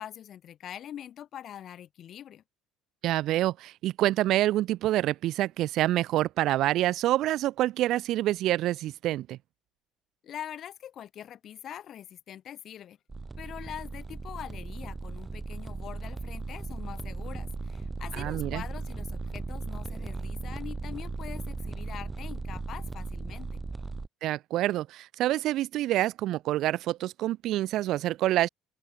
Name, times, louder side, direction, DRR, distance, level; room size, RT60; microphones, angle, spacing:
voice 1, 0.0-2.4 10.2-13.0 13.4-23.6, left 10 dB, 45° left, 7.0 m, -43 dB
voice 2, 3.0-9.4 18.2-18.6 24.2-28.5, right 14 dB, 60° right, 0.7 m, -27 dB
sound 1, 13.1-24.1, right 3 dB, 15° right, 0.5 m, -37 dB
open air
cardioid pair, 125°, 0 cm